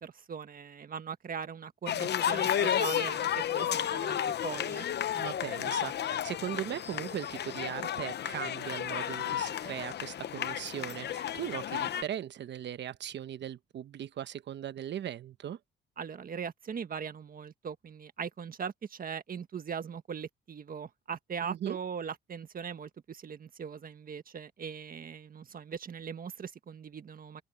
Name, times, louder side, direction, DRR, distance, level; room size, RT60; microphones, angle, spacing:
voice 1, 0.0-4.8 16.0-27.4, right 7 dB, 45° right, 1.5 m, -40 dB
sound 1, 1.9-12.0, left 10 dB, 60° left, 0.9 m, -32 dB
voice 2, 5.1-15.6 21.4-21.8, right 10 dB, 65° right, 1.2 m, -38 dB
open air
cardioid pair, 90°, 20 cm